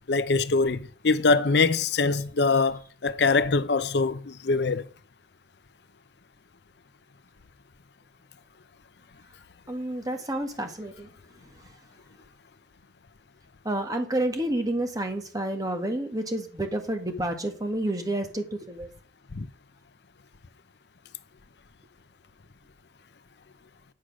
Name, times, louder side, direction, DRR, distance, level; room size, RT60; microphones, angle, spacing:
voice 1, 0.1-4.8 19.3-19.5, left 4 dB, 65° left, 0.6 m, -23 dB
voice 2, 9.7-11.1 13.6-18.9, right 1 dB, 20° right, 1.6 m, -29 dB
10.0 x 6.4 x 6.3 m
head